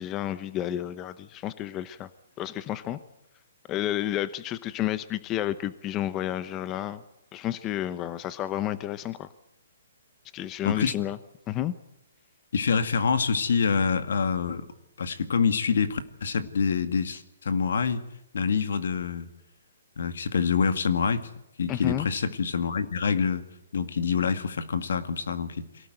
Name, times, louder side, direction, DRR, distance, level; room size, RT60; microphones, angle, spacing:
voice 1, 0.0-2.1 2.4-3.0 3.7-7.0 7.3-9.3 10.3-11.2 11.5-11.7 21.7-22.1, left 12 dB, 20° left, 14 dB, 0.8 m, -31 dB
voice 2, 12.5-14.7 15.0-18.0 18.3-19.3 20.0-21.3 21.6-23.4 23.7-25.7, left 6 dB, 70° left, 10 dB, 2.1 m, -26 dB
23.5 x 18.0 x 7.9 m, 0.89 s
hypercardioid pair, 150°, 0 cm